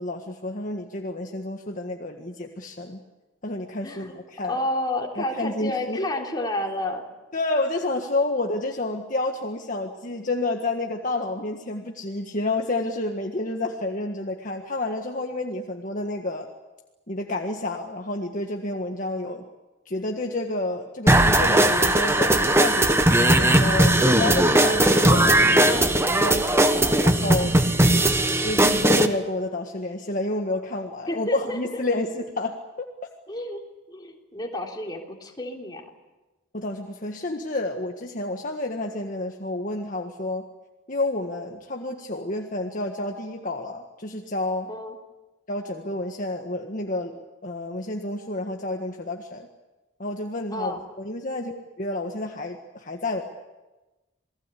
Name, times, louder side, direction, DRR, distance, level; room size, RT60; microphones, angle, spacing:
voice 1, 0.0-3.0 3.4-4.6 5.1-6.1 7.3-16.5 17.1-19.5 19.8-23.0 23.4-27.6 28.4-32.6 36.5-40.4 40.9-44.7 45.5-49.5 50.0-53.2, left 2 dB, 45° left, 2 dB, 1.7 m, -30 dB
voice 2, 3.8-4.2 4.5-7.0 31.1-31.8 33.3-33.6 33.9-35.8 44.7-44.9 50.5-50.8, left 1 dB, 20° left, 0 dB, 3.6 m, -30 dB
sound 1, 21.1-29.1, right 1 dB, 15° right, 1.3 m, -18 dB
28.0 x 19.5 x 8.5 m, 1.1 s
head